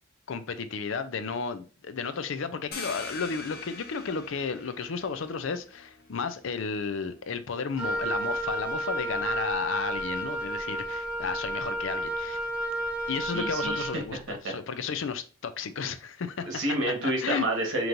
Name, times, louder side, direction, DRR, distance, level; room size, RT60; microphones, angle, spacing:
voice 1, 0.3-12.4 13.1-16.5 17.2-17.5, left 5 dB, 70° left, 0.5 m, -33 dB
sound 1, 2.7-8.1, left 3 dB, 50° left, 0.9 m, -44 dB
Wind instrument woodwind instrument, 7.8-14.0, right 1 dB, 5° right, 0.6 m, -31 dB
voice 2, 13.3-13.8 14.4-14.5 16.5-17.9, right 1 dB, 70° right, 1.4 m, -29 dB
5.1 x 3.0 x 2.6 m
head